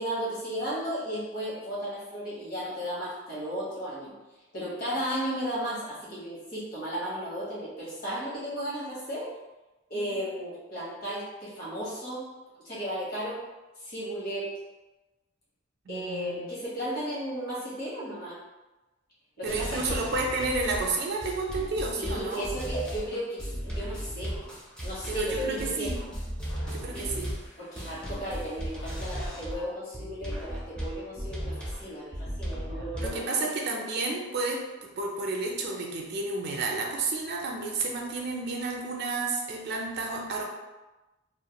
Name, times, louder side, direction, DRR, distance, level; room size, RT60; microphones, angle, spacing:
voice 1, 0.0-4.1 4.5-9.3 9.9-12.3 12.6-13.4 13.8-14.5 15.9-18.4 19.4-20.0 22.0-24.4 24.8-25.9 26.9-27.1 27.6-33.5, equal, 50° left, -8 dB, 1.1 m, -34 dB
voice 2, 15.9-16.4 19.4-22.4 25.1-26.0 26.7-27.3 33.0-40.4, right 3 dB, 55° right, 0 dB, 0.4 m, -31 dB
sound 1, 19.5-29.7 29.9-33.3, equal, 5° left, 0.4 m, -36 dB
2.4 x 2.2 x 2.8 m, 1.1 s
head